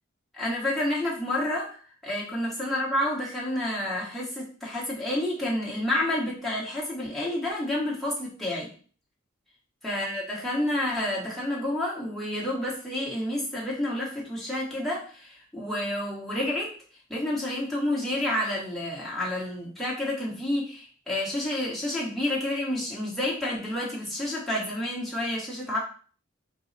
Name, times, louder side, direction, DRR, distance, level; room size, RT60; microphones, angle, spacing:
voice 1, 0.3-8.7 9.8-16.8 17.1-25.8, left 1 dB, ahead, -6 dB, 1.2 m, -29 dB
4.6 x 2.0 x 4.0 m, 0.42 s
head